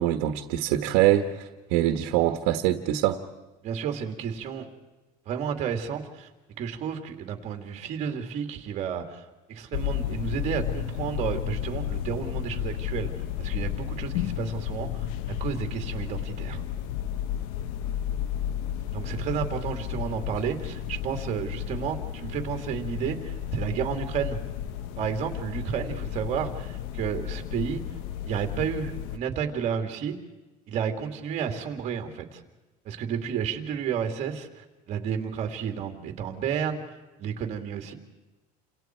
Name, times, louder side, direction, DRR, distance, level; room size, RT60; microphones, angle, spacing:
voice 1, 0.0-3.2, right 13 dB, 80° right, 7 dB, 1.4 m, -24 dB
voice 2, 3.6-4.6 5.3-6.3 6.6-13.1 13.4-15.1 15.4-16.6 18.9-24.4 25.0-27.8 28.2-30.2 30.7-32.4 32.8-36.9 37.2-37.9, right 7 dB, 40° right, 5 dB, 2.6 m, -31 dB
sound 1, 9.7-29.2, left 10 dB, 75° left, 1.1 m, -33 dB
29.5 x 27.0 x 4.6 m, 1.1 s
cardioid pair, 170°, 17 cm